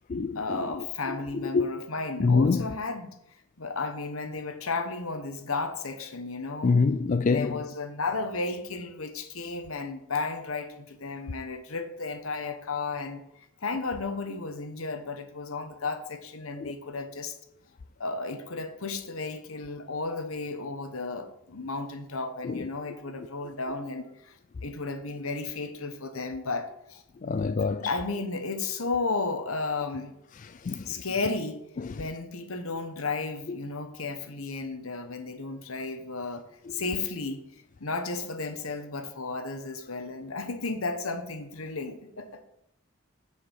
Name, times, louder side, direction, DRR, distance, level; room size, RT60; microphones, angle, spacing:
voice 1, 0.3-3.2 3.6-6.8 7.2-13.2 13.6-17.3 18.0-24.4 24.6-27.0 27.3-27.5 27.8-30.1 30.8-31.6 31.9-36.4 36.7-37.4 37.8-42.4, left 3 dB, 75° left, 1.3 m, -33 dB
voice 2, 2.2-2.7 6.6-7.6 16.6-16.7 22.5-22.6 27.2-27.9 30.6-30.8, left 4 dB, 35° left, 0.3 m, -24 dB
7.5 x 6.4 x 7.3 m
head